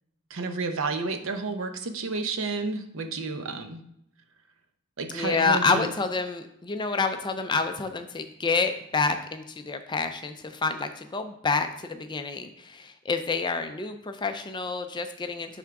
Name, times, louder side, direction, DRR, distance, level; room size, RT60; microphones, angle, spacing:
voice 1, 0.3-3.8 5.0-5.9, right 3 dB, 60° right, 6 dB, 0.7 m, -31 dB
voice 2, 5.1-15.6, left 4 dB, 20° left, 7 dB, 0.4 m, -28 dB
10.5 x 3.6 x 3.6 m, 0.76 s
head